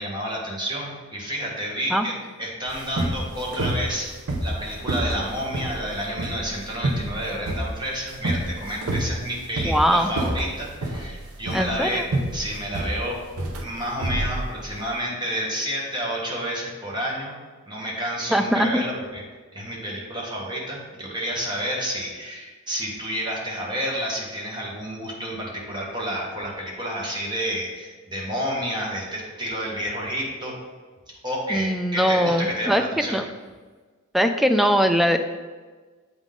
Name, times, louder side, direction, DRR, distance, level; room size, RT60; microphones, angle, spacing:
voice 1, 0.0-4.1 4.4-12.1 12.3-13.2 13.6-17.3 17.7-19.2 19.5-30.5 31.1-33.2, equal, 20° right, -3 dB, 1.3 m, -30 dB
sound 1, 2.7-14.9, right 1 dB, 80° right, 0.8 m, -28 dB
voice 2, 9.6-10.1 11.5-12.0 18.3-18.8 31.5-33.3 34.1-35.2, equal, ahead, 6 dB, 0.3 m, -21 dB
8.0 x 3.8 x 3.7 m, 1.4 s
head